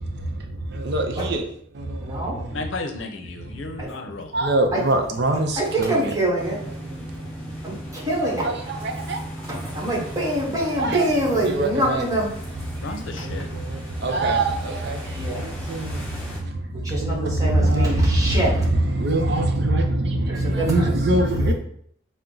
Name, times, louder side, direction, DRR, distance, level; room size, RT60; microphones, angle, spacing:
voice 1, 0.0-1.5 1.7-2.7 3.4-3.8 4.3-6.2 6.4-8.1 8.4-9.9 10.8-11.1 11.3-12.1 12.7-21.5, right 1 dB, 60° right, 0.6 m, -24 dB
voice 2, 2.0-2.4 3.8-3.9 4.7-4.8 5.6-6.6 7.6-8.5 9.5-12.3 15.1-15.4 16.8-18.5 20.4-20.9, right 1 dB, 20° right, 1.2 m, -25 dB
voice 3, 2.5-4.3 12.8-13.5, left 3 dB, 85° left, 0.6 m, -33 dB
sound 1, 6.3-16.4, equal, 5° left, 1.7 m, -37 dB
5.7 x 2.1 x 3.8 m
head